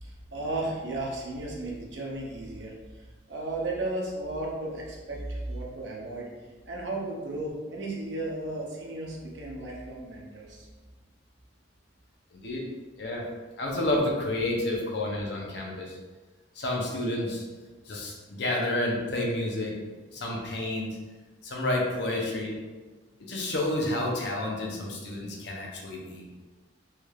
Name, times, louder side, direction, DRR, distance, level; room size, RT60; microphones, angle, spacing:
voice 1, 0.0-6.3 6.7-10.7, right 2 dB, 65° right, -2 dB, 0.7 m, -34 dB
voice 2, 12.3-12.7 13.0-13.2 13.6-16.0 16.5-17.4 17.9-19.7 20.1-20.9 21.4-22.5 23.2-26.2, left 1 dB, 60° left, -1 dB, 0.7 m, -30 dB
3.3 x 3.2 x 2.4 m, 1.3 s
head